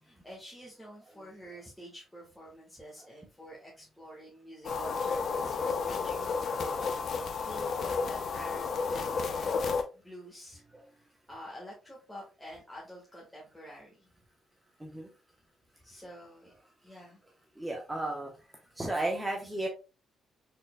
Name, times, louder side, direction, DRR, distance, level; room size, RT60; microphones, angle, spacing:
voice 1, 0.0-5.6 5.8-10.6 10.9-14.1 15.8-16.5 16.8-17.2, equal, 5° left, -4 dB, 1.5 m, -48 dB
sound 1, 4.6-9.8, left 5 dB, 60° left, 0.6 m, -32 dB
voice 2, 7.3-7.6 10.7-10.8 14.8-15.1 17.6-18.3 18.7-19.7, right 2 dB, 10° right, 1 dB, 0.9 m, -34 dB
4.4 x 3.7 x 2.2 m, 0.31 s
cardioid pair, 90°, 0 cm